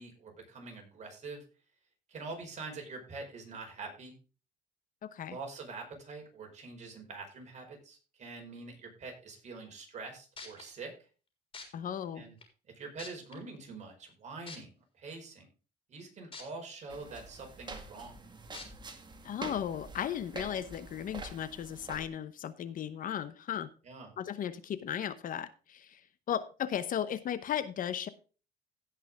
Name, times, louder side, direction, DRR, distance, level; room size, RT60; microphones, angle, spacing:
voice 1, 0.0-1.4 2.1-4.1 5.3-10.9 12.1-12.3 12.7-15.5 15.9-18.2 23.8-24.1, right 3 dB, 45° right, 2 dB, 4.9 m, -45 dB
voice 2, 5.0-5.4 11.7-12.2 19.2-23.7 24.2-26.0 26.3-28.1, left 9 dB, 55° left, 14 dB, 0.9 m, -36 dB
sound 1, 10.0-10.1 10.4-10.6 11.5-11.6 12.4-12.5 13.0-13.3 14.5-14.6 16.3-16.4 16.9-17.0 18.5-18.6 19.4-19.5, left 4 dB, 30° left, 3.9 m, -44 dB
sound 2, 16.9-22.1, right 3 dB, 25° right, 1.8 m, -46 dB
16.5 x 6.1 x 3.5 m, 0.35 s
cardioid pair, 110°, 17 cm